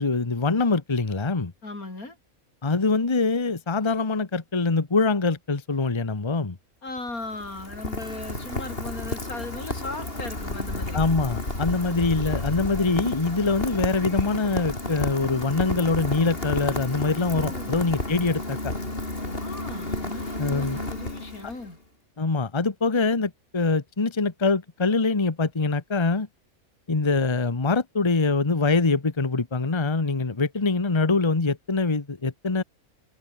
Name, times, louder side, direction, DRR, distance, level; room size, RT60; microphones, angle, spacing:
voice 1, 0.0-1.5 2.6-6.6 10.9-18.7 20.4-20.8 22.2-26.3 26.9-32.6, left 3 dB, 20° left, 1.2 m, -24 dB
voice 2, 1.6-2.2 6.8-11.0 11.8-12.0 17.3-17.9 19.4-21.8, left 2 dB, 90° left, 5.6 m, -37 dB
Rain, 6.9-21.7, left 2 dB, 40° left, 5.0 m, -31 dB
omnidirectional pair, 1.5 m